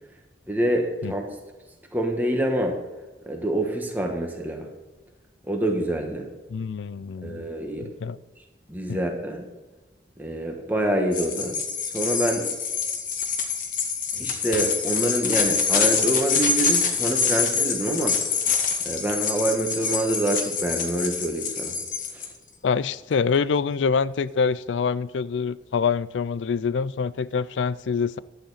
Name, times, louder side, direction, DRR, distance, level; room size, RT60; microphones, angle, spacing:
voice 1, 0.5-1.3 1.9-2.8 3.3-4.7 5.5-6.3 7.2-7.9 8.7-9.4 10.2-11.6 11.9-12.5 14.1-18.2 18.8-21.8 22.1-22.3, right 1 dB, 10° right, 2 dB, 1.3 m, -26 dB
voice 2, 6.5-7.5 7.8-8.2 8.9-9.0 22.6-28.2, left 5 dB, 85° left, 18 dB, 0.4 m, -25 dB
sound 1, 11.1-22.3, left 6 dB, 45° left, 1.2 m, -25 dB
11.5 x 8.9 x 4.1 m, 1.2 s
head